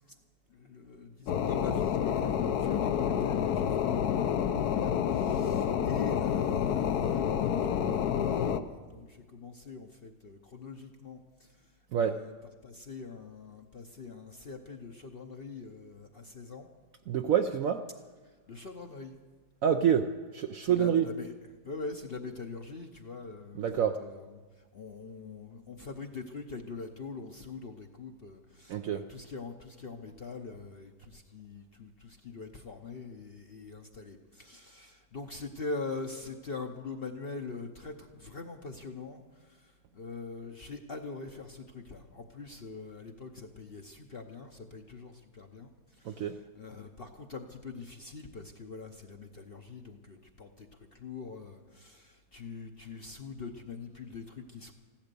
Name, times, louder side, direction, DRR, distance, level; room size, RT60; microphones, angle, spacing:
voice 1, 0.5-12.3 12.6-16.7 18.5-19.1 20.6-21.3 21.6-23.7 24.0-24.4 24.7-54.7, left 4 dB, 45° left, 4 dB, 0.8 m, -43 dB
sound 1, 1.3-8.6, left 8 dB, 70° left, 1.2 m, -28 dB
voice 2, 11.9-12.2 17.1-17.9 19.6-21.1 23.5-24.0 28.7-29.0 46.0-46.4, right 8 dB, 65° right, 6 dB, 0.9 m, -27 dB
15.5 x 12.0 x 6.9 m, 1.4 s
omnidirectional pair, 1.8 m